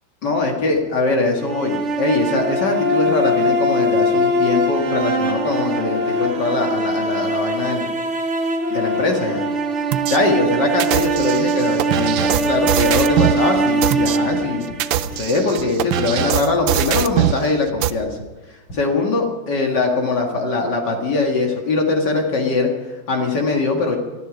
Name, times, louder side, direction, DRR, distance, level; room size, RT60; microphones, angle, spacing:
voice 1, 0.2-7.9 8.7-9.4 10.1-14.6 14.9-18.2 18.7-24.0, left 3 dB, 65° left, 1 dB, 2.5 m, -21 dB
sound 1, 1.4-15.5, right 1 dB, 40° right, 1.7 m, -22 dB
sound 2, 9.9-10.2 10.8-13.4 13.8-14.2 14.7-17.4 17.8-17.9, right 12 dB, 85° right, 1.4 m, -21 dB
sound 3, 12.4-12.9 13.2-13.7 13.9-14.1 14.3-14.8 15.1-15.3 15.6-15.7 16.1-16.2 16.6-16.7 17.1-17.2 17.7-17.8 18.2-18.3 18.7-18.8, equal, 80° left, 5.3 m, -37 dB
19.5 x 13.0 x 5.1 m, 1.2 s
omnidirectional pair, 2.1 m